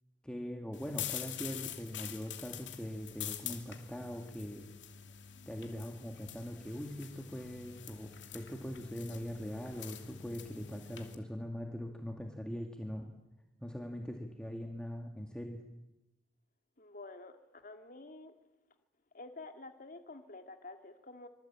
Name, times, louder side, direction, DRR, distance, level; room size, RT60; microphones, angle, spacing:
voice 1, 0.2-4.7 5.5-13.1 13.6-15.6, equal, 5° left, 2.2 m, -42 dB
sound 1, 0.7-11.1, left 10 dB, 75° left, 3.0 m, -46 dB
voice 2, 16.8-18.3 19.1-21.3, left 2 dB, 45° left, 2.1 m, -49 dB
25.0 x 24.5 x 8.8 m
head